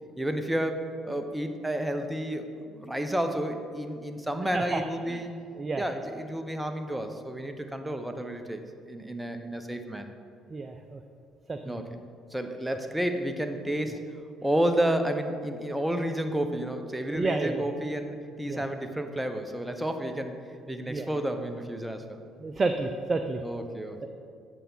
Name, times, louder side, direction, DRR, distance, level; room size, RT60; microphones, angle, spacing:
voice 1, 0.2-5.3 5.8-10.1 11.6-11.9 12.3-14.0 14.4-20.3 20.7-22.2 23.4-24.1, right 1 dB, 10° right, 6 dB, 1.0 m, -31 dB
voice 2, 10.5-11.0 11.5-11.8 17.1-17.7 18.5-18.6 20.8-21.1 22.4-23.4 24.0-24.1, right 3 dB, 35° right, 7 dB, 0.6 m, -30 dB
8.4 x 6.9 x 5.6 m, 2.3 s
hypercardioid pair, 55°, 0 cm